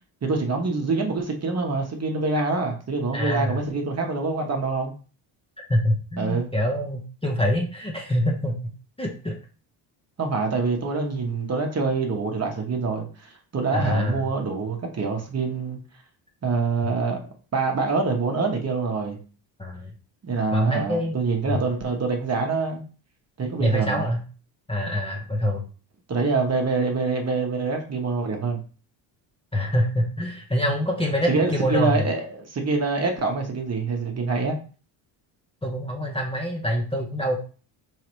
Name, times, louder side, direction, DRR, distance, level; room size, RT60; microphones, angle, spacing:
voice 1, 0.2-4.9 6.2-6.5 10.2-15.8 16.4-17.2 17.5-19.2 20.2-22.8 23.4-24.1 26.1-28.6 31.3-34.5, right 4 dB, 30° right, 1.0 m, -25 dB
voice 2, 3.1-3.6 5.7-8.6 9.0-9.3 13.7-14.2 19.6-19.9 20.5-21.2 21.5-21.6 23.6-24.2 24.7-25.6 29.5-32.0 35.6-37.4, equal, 10° left, 0.7 m, -25 dB
3.7 x 3.3 x 3.1 m
supercardioid pair, 85°, 48 cm